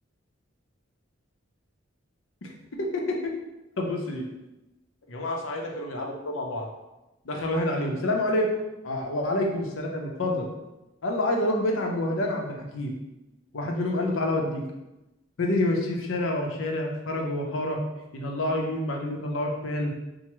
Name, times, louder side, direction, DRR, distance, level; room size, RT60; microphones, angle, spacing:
voice 1, 2.9-3.3 3.8-4.2 5.1-6.7 7.3-8.5 8.8-10.5 11.0-12.9 13.5-14.6 15.4-17.8 18.1-19.9, left 1 dB, 80° left, 1 dB, 0.6 m, -28 dB
4.5 x 2.1 x 3.0 m, 0.98 s
head